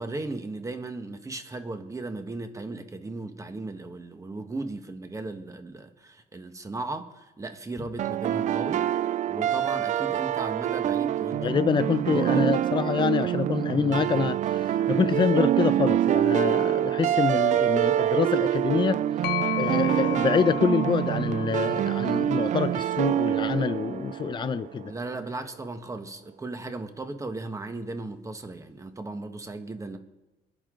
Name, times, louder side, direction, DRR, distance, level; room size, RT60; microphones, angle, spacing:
voice 1, 0.0-11.6 12.1-12.5 24.9-30.0, right 2 dB, 20° right, 1.5 m, -36 dB
sound 1, 8.0-24.9, right 11 dB, 45° right, 0.4 m, -25 dB
voice 2, 11.4-19.0 19.6-24.9, left 6 dB, 25° left, 0.6 m, -26 dB
sound 2, 19.2-23.0, left 13 dB, 80° left, 0.7 m, -35 dB
25.5 x 10.5 x 3.9 m
cardioid pair, 110°, 17 cm